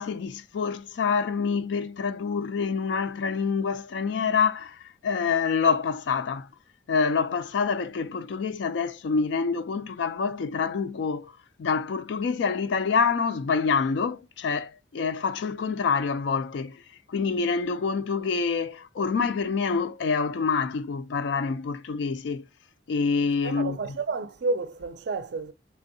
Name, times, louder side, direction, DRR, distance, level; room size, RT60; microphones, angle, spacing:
voice 1, 0.0-6.5 6.9-11.3 11.6-16.8 17.1-22.4 22.9-23.8, left 5 dB, 65° left, 0.3 m, -26 dB
voice 2, 23.4-25.5, right 3 dB, 60° right, 0.4 m, -30 dB
3.3 x 2.6 x 2.6 m
head